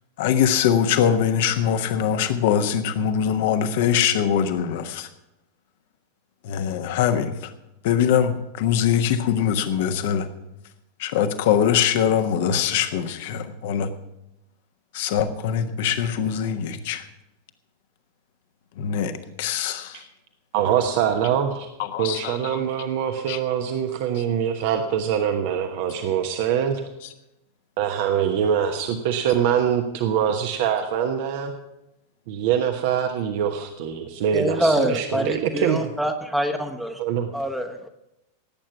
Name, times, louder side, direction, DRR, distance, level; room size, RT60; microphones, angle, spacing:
voice 1, 0.2-5.1 6.4-7.4 7.8-10.3 11.0-13.9 14.9-17.0 18.8-19.1 19.4-20.0 21.8-22.6 23.3-23.4, left 8 dB, 50° left, 1.3 m, -22 dB
voice 2, 20.5-21.7 22.0-26.8 27.8-31.5 32.3-35.9 37.0-37.3, right 8 dB, 50° right, 1.1 m, -24 dB
voice 3, 34.3-36.9 37.3-37.9, right 1 dB, ahead, 1.1 m, -25 dB
17.5 x 8.9 x 5.9 m
figure-of-eight pair, 90°, 0 cm